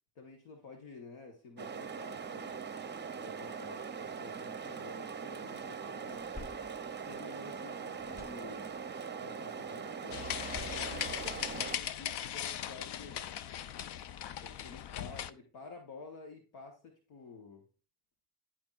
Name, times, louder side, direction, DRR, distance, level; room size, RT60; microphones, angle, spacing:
voice 1, 0.2-2.9 3.1-6.3 7.1-8.8 9.1-10.2 10.7-13.3 14.4-17.6, left 3 dB, 75° left, 2 dB, 1.2 m, -51 dB
sound 1, 1.6-11.8, right 6 dB, 20° right, 0.6 m, -41 dB
sound 2, 4.0-5.5 5.8-7.7 8.0-9.0 10.3-12.0, left 2 dB, 30° left, 2.1 m, -53 dB
sound 3, 10.1-15.3, left 10 dB, 55° left, 0.6 m, -39 dB
10.5 x 4.4 x 2.4 m, 0.36 s
hypercardioid pair, 40°, 49 cm